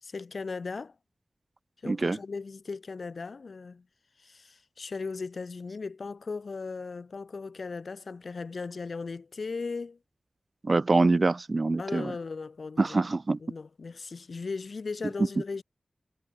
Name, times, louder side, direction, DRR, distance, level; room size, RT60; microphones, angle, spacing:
voice 1, 0.0-0.9 1.8-3.8 4.2-10.0 11.8-13.0 13.4-15.6, left 4 dB, 70° left, 5.7 m, -37 dB
voice 2, 1.9-2.2 10.6-12.1 12.8-13.4, right 3 dB, 45° right, 2.6 m, -25 dB
wide cardioid pair, 85°, 0 cm